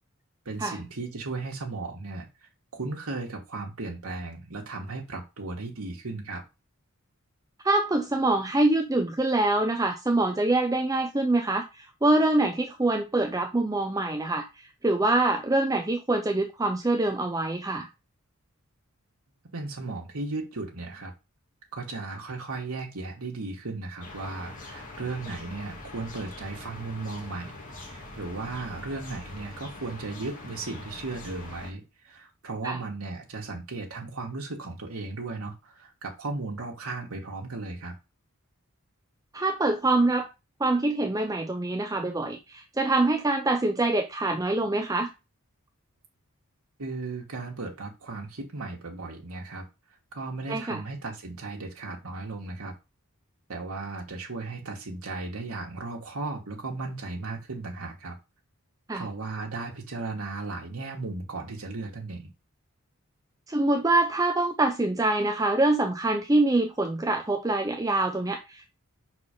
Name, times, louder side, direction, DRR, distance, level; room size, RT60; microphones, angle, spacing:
voice 1, 0.4-6.4 19.5-21.1 21.7-37.9 46.8-49.6 50.1-52.7 53.5-58.2 58.9-62.3, right 3 dB, 80° right, 1.4 m, -36 dB
voice 2, 7.6-14.5 14.8-17.9 32.6-32.8 39.3-40.3 40.6-45.1 50.5-50.8 58.9-59.1 63.5-68.7, right 2 dB, 15° right, 0.5 m, -25 dB
sound 1, 24.0-31.7, left 2 dB, 35° left, 1.5 m, -43 dB
5.5 x 4.1 x 5.1 m
head